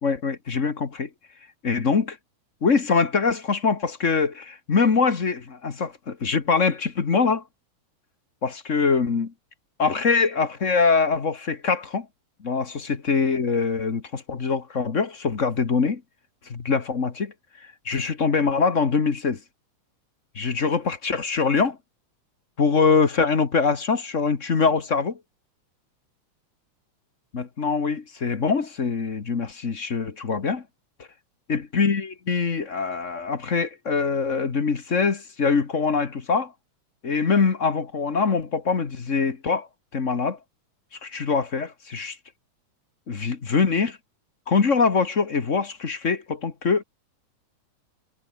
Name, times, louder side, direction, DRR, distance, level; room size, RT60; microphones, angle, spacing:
voice 1, 0.0-1.1 1.6-2.2 2.6-7.4 8.4-9.3 9.8-12.1 12.4-16.0 16.5-17.3 17.8-19.4 20.3-21.8 22.6-25.2 27.3-30.6 31.5-36.5 37.0-39.7 39.9-40.4 41.0-42.2 43.1-44.0 44.5-46.8, left 5 dB, 35° left, 1.5 m, -23 dB
omnidirectional pair, 3.4 m